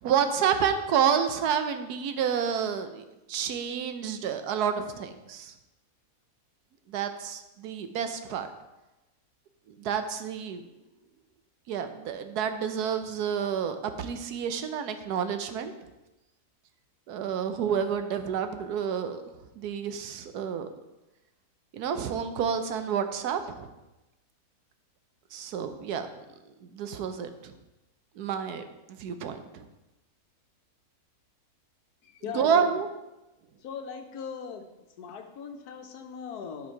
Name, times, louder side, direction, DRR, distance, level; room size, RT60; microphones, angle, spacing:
voice 1, 0.0-5.5 6.9-8.5 9.7-10.6 11.7-15.7 17.1-19.2 19.6-20.7 21.7-23.7 25.3-26.2 26.6-27.6 28.2-29.7 32.3-32.9, right 7 dB, 85° right, 8 dB, 1.3 m, -29 dB
voice 2, 32.0-32.7 33.6-34.7 35.0-36.7, left 6 dB, 80° left, 6 dB, 1.4 m, -39 dB
11.0 x 4.8 x 4.5 m, 1.0 s
omnidirectional pair, 1.6 m